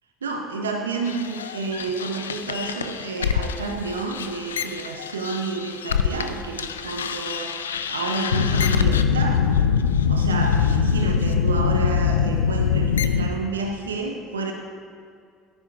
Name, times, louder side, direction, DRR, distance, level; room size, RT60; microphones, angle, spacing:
voice 1, 0.2-7.6 7.9-9.5 10.1-14.5, right 4 dB, 85° right, 3 dB, 0.7 m, -30 dB
sound 1, 1.1-6.3 6.6-13.3, left 7 dB, 85° left, 0.4 m, -23 dB
13.5 x 9.9 x 2.4 m, 2.3 s
hypercardioid pair, 65°, 0 cm